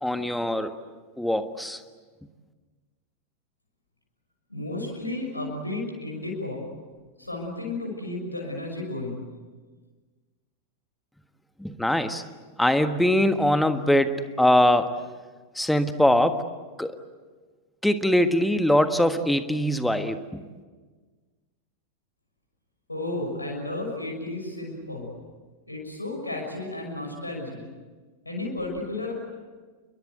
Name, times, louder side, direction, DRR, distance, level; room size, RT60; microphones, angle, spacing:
voice 1, 0.0-0.8 1.2-1.8 11.6-12.2 12.6-14.9 15.5-16.4 16.8-17.0 17.8-20.5, left 1 dB, 5° left, 9 dB, 1.5 m, -22 dB
voice 2, 4.5-6.6 7.2-9.2 22.9-25.1 25.7-27.6 28.2-29.1, left 2 dB, 85° left, 0 dB, 6.1 m, -33 dB
29.5 x 22.5 x 8.1 m, 1.4 s
figure-of-eight pair, 90°, 0 cm